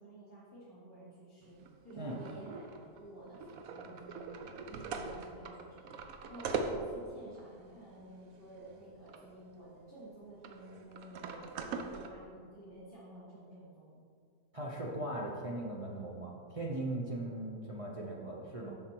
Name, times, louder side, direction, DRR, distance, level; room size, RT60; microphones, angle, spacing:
voice 1, 0.0-1.6 1.8-6.0 6.3-14.0, right 1 dB, 10° left, -13 dB, 2.1 m, -51 dB
sound 1, 1.4-9.3 9.6-9.7 10.4-12.1, right 4 dB, 65° right, 1.0 m, -42 dB
voice 2, 14.5-18.8, right 1 dB, 40° right, -3 dB, 0.4 m, -39 dB
7.2 x 6.5 x 4.5 m, 2.2 s
omnidirectional pair, 1.7 m